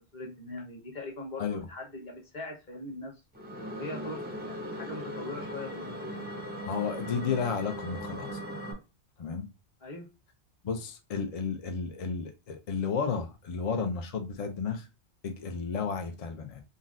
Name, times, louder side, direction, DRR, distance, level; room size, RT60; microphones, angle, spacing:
voice 1, 0.1-3.1 3.7-6.2 9.8-10.1, left 2 dB, 40° left, 1.2 m, -41 dB
sound 1, 3.3-8.7, equal, 15° right, 0.4 m, -39 dB
voice 2, 6.7-8.4 9.2-9.5 10.6-14.9 15.2-16.6, left 5 dB, 65° left, 0.3 m, -32 dB
3.9 x 2.0 x 2.4 m
omnidirectional pair, 1.2 m